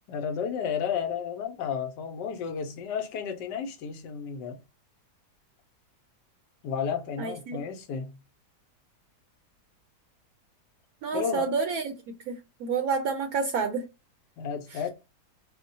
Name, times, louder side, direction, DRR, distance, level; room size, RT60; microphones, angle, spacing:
voice 1, 0.1-4.6 6.6-8.2 11.1-11.5 14.4-14.9, left 7 dB, 85° left, 1.3 m, -32 dB
voice 2, 7.2-7.6 11.0-13.9, right 5 dB, 70° right, 1.0 m, -29 dB
5.1 x 2.1 x 2.6 m
omnidirectional pair, 1.8 m